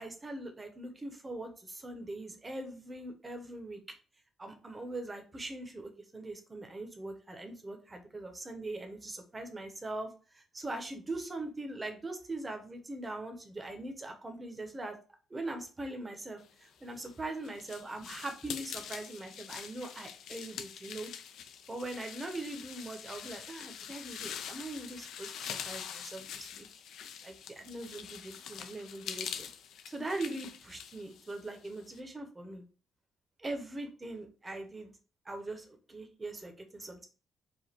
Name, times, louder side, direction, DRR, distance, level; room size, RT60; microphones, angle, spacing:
voice 1, 0.0-3.8 4.4-15.0 15.3-21.1 21.7-26.7 27.2-29.5 29.9-32.6 33.4-34.9 35.2-37.1, right 2 dB, 15° right, 5 dB, 0.8 m, -41 dB
sound 1, 16.8-32.0, left 8 dB, 75° left, 0.5 m, -44 dB
4.9 x 2.4 x 4.3 m, 0.36 s
cardioid pair, 170°, 0 cm